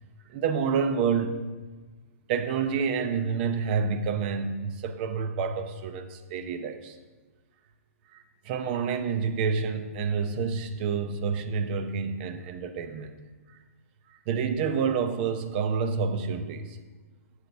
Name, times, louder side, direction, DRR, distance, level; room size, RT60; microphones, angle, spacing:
voice 1, 0.3-1.4 2.3-7.0 8.1-13.1 13.5-13.6 14.1-16.8, right 6 dB, 40° right, 8 dB, 0.7 m, -28 dB
8.0 x 7.9 x 3.4 m, 1.3 s
hypercardioid pair, 135°, 8 cm